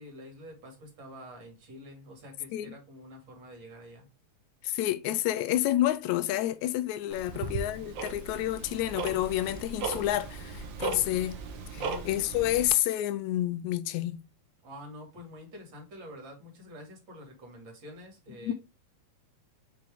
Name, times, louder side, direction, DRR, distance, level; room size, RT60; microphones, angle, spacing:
voice 1, 0.0-4.1 7.3-7.5 11.7-12.0 14.6-18.5, left 1 dB, 40° right, 2.6 m, -47 dB
voice 2, 4.6-11.4 11.7-14.2 18.4-18.5, left 14 dB, 80° left, 1.8 m, -29 dB
Tick-tock, 7.1-12.7, right 4 dB, 85° right, 1.0 m, -37 dB
6.0 x 4.9 x 3.5 m
omnidirectional pair, 3.6 m